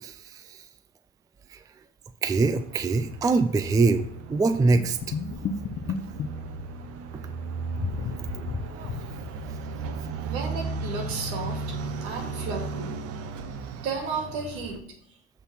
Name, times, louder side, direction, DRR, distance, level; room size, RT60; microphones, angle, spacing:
voice 1, 2.2-5.0, right 3 dB, 10° right, 10 dB, 0.4 m, -23 dB
sound 1, 2.3-14.8, right 4 dB, 45° right, 0.9 m, -36 dB
sound 2, 4.7-7.0 7.7-9.7 10.0-10.1 10.5-10.6, left 6 dB, 35° left, 0.7 m, -33 dB
voice 2, 10.2-11.6 12.0-13.0 13.8-14.8, right 4 dB, 60° right, 3 dB, 2.1 m, -33 dB
8.1 x 4.0 x 5.8 m, 0.67 s
hypercardioid pair, 70°, 33 cm